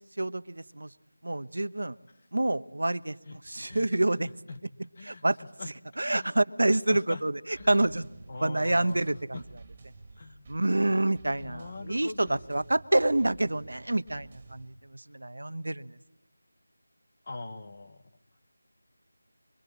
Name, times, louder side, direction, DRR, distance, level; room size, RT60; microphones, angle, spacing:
voice 1, 0.2-0.9 1.2-2.0 2.3-4.3 5.0-5.4 6.0-8.0 8.4-9.4 10.5-16.0, right 2 dB, 85° right, 12 dB, 1.1 m, -27 dB
voice 2, 4.2-4.6 5.0-5.2 5.6-5.7 6.1-6.3 6.9-7.2 7.6-7.9 8.3-9.0 9.3-9.4 10.2-10.6 11.4-12.4 17.3-18.0, left 3 dB, 30° left, 8 dB, 1.3 m, -41 dB
sound 1, 7.5-14.8, right 3 dB, 20° right, 2.9 m, -51 dB
25.5 x 24.0 x 8.5 m, 0.83 s
figure-of-eight pair, 175°, 0 cm